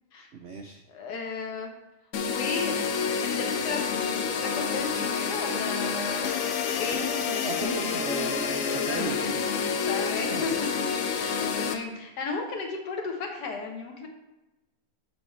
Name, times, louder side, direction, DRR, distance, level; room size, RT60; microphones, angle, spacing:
voice 1, 0.3-0.8 7.0-9.4 10.3-10.5, right 5 dB, 90° right, 4 dB, 0.5 m, -36 dB
voice 2, 0.9-1.7 2.2-2.7 3.2-6.4 6.8-7.0 8.8-9.3 9.9-14.1, left 4 dB, 85° left, 2 dB, 1.6 m, -34 dB
sound 1, 2.1-11.8, left 6 dB, 65° left, 0.9 m, -28 dB
6.9 x 3.5 x 4.4 m, 1.0 s
omnidirectional pair, 1.7 m